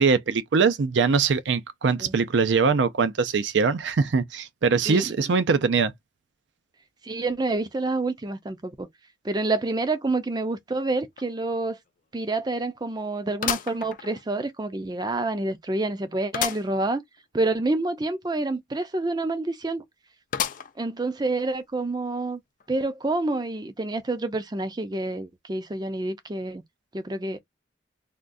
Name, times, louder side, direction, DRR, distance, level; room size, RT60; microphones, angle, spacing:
voice 1, 0.0-5.9, right 5 dB, 75° right, 0.5 m, -22 dB
voice 2, 7.0-8.9 9.2-11.8 12.1-17.0 17.3-19.8 20.8-22.4 22.7-26.6 26.9-27.4, right 2 dB, 20° right, 0.4 m, -28 dB
sound 1, 11.2-11.3 11.7-11.8 13.4-14.5 15.0-15.1 16.3-16.7 17.2-17.3 17.5-17.6 20.3-20.9 21.5-21.6 22.6-22.7, left 9 dB, 45° left, 0.3 m, -31 dB
3.5 x 2.3 x 2.5 m
head